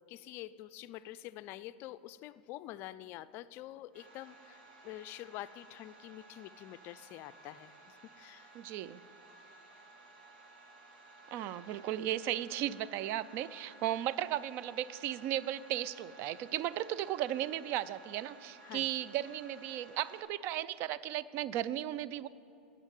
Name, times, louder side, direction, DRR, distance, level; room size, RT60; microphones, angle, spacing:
voice 1, 0.1-4.6 4.8-8.5 18.6-18.9, left 14 dB, 45° left, 16 dB, 0.4 m, -47 dB
sound 1, 3.9-20.2, right 2 dB, 70° right, 2.2 m, -56 dB
voice 2, 8.5-9.0 11.3-22.3, right 12 dB, 50° right, 17 dB, 0.4 m, -35 dB
10.5 x 7.4 x 8.2 m, 2.8 s
hypercardioid pair, 105°, 5 cm